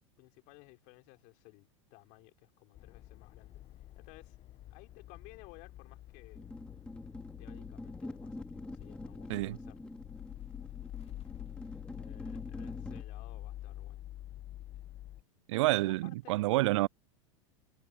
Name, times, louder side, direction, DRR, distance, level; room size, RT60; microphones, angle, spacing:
voice 1, 0.2-4.4 4.7-6.5 7.4-9.8 11.5-14.0 15.7-16.4, left 26 dB, 55° left, 5.1 m, -58 dB
sound 1, 2.7-15.2, left 13 dB, 35° left, 1.1 m, -47 dB
sound 2, 6.4-13.0, left 2 dB, 5° left, 4.0 m, -45 dB
voice 2, 15.5-16.9, right 19 dB, 65° right, 0.4 m, -28 dB
hypercardioid pair, 95°, 17 cm